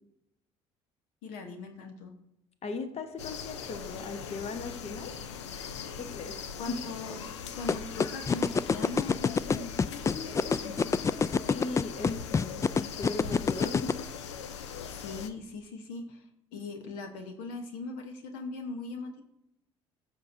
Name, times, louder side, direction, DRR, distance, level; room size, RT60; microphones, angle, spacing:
voice 1, 1.2-2.1 6.6-10.9 14.8-19.2, left 3 dB, 75° left, 5 dB, 1.0 m, -40 dB
voice 2, 2.6-5.1 6.0-6.4 6.7-6.8 11.5-14.1, left 4 dB, 45° left, 8 dB, 1.1 m, -38 dB
sound 1, 3.2-15.3, left 7 dB, 90° left, 0.5 m, -40 dB
sound 2, 7.7-13.9, left 5 dB, 20° left, 0.3 m, -24 dB
14.0 x 6.3 x 2.6 m, 0.85 s
hypercardioid pair, 60°, 14 cm